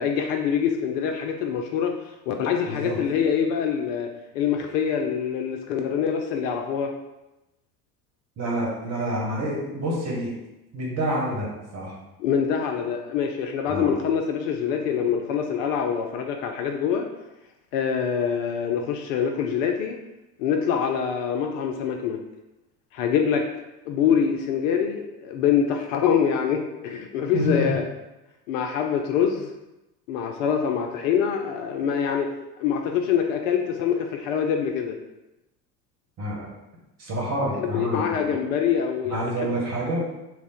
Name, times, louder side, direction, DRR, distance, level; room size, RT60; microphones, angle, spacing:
voice 1, 0.0-1.9 2.3-6.9 12.2-17.1 17.7-20.0 20.4-22.2 22.9-23.5 23.9-27.9 28.5-29.5 30.1-32.3 32.6-35.0 37.6-39.3, left 7 dB, 55° left, 3 dB, 0.5 m, -25 dB
voice 2, 2.7-3.0 8.4-10.3 10.7-11.9 13.7-13.9 27.3-27.7 36.2-36.5 37.0-38.4 39.0-40.0, right 1 dB, 30° right, -3 dB, 1.3 m, -28 dB
3.4 x 2.1 x 4.2 m, 0.99 s
figure-of-eight pair, 70°, 49 cm